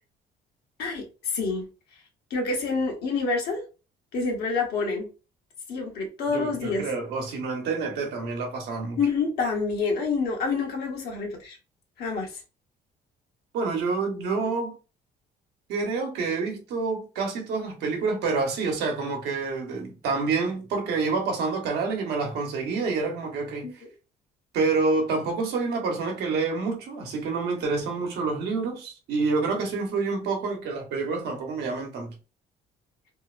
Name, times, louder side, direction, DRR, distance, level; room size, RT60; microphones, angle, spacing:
voice 1, 0.8-1.7 2.3-3.6 4.1-5.1 5.7-6.8 9.0-11.6 12.0-12.3 23.6-23.7, left 4 dB, 70° left, 0.9 m, -27 dB
voice 2, 6.3-9.0 13.5-14.7 15.7-23.8 24.5-32.1, right 4 dB, 75° right, 0.9 m, -28 dB
2.7 x 2.0 x 2.4 m
cardioid pair, 110°, 17 cm